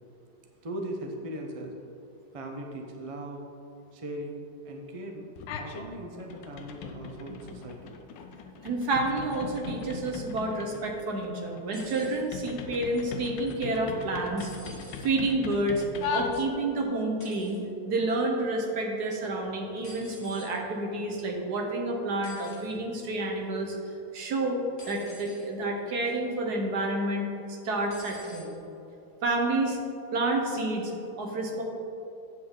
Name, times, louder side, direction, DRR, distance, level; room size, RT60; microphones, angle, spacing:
voice 1, 0.6-1.8 2.3-3.5 3.9-5.3 5.6-7.9, right 1 dB, 45° right, 2 dB, 0.4 m, -39 dB
sound 1, 5.4-5.9 6.2-16.8, left 5 dB, 85° left, 1.4 m, -39 dB
voice 2, 8.6-14.5 15.0-15.8 16.1-23.7 24.1-24.6 24.9-28.6 29.2-29.8 30.1-30.9 31.2-31.6, right 2 dB, 65° right, 1 dB, 1.5 m, -29 dB
sound 2, 11.7-12.2 14.4-15.1 17.2-17.6 19.8-20.5 22.2-22.7 24.8-25.5 26.0-26.4 27.9-28.5 29.5-29.6, equal, 35° left, 2.0 m, -49 dB
8.3 x 7.4 x 3.8 m, 2.8 s
omnidirectional pair, 1.9 m